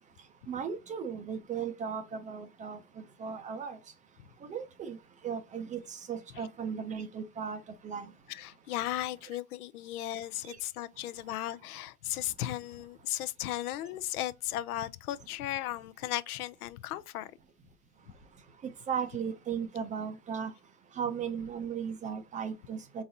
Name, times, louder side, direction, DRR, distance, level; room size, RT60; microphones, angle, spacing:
voice 1, 0.5-3.8 4.4-5.0 5.2-8.1 10.4-10.6 18.6-20.5 20.9-23.0, right 7 dB, 20° right, 0.4 m, -36 dB
voice 2, 8.3-17.3, left 14 dB, 90° left, 0.6 m, -36 dB
4.0 x 3.9 x 2.7 m
supercardioid pair, 130°, 43 cm